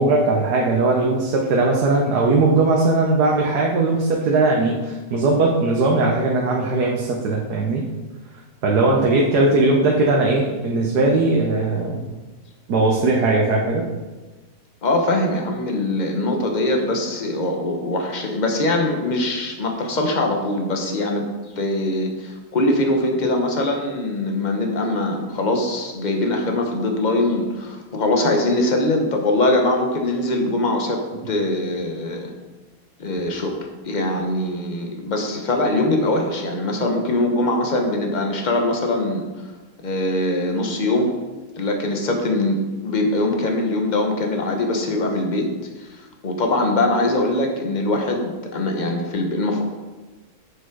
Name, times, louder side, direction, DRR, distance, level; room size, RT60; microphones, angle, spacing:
voice 1, 0.0-7.8 8.6-12.0 12.7-13.8, right 2 dB, 85° right, -1 dB, 1.5 m, -19 dB
voice 2, 14.8-21.3 21.6-32.3 33.0-33.6 33.8-39.2 39.8-41.2 41.6-45.5 45.8-49.6, left 2 dB, 35° left, 3 dB, 1.0 m, -22 dB
7.2 x 6.3 x 4.6 m, 1.2 s
omnidirectional pair, 1.7 m